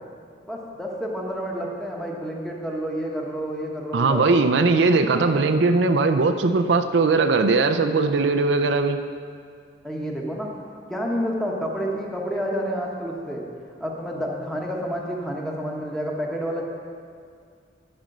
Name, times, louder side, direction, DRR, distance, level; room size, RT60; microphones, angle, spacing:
voice 1, 0.5-4.4 5.1-5.5 9.8-10.5 10.9-13.4 13.8-16.7, equal, 5° left, -2 dB, 1.1 m, -29 dB
voice 2, 3.9-9.0, right 3 dB, 75° right, 7 dB, 0.5 m, -19 dB
10.5 x 5.2 x 6.6 m, 2.2 s
head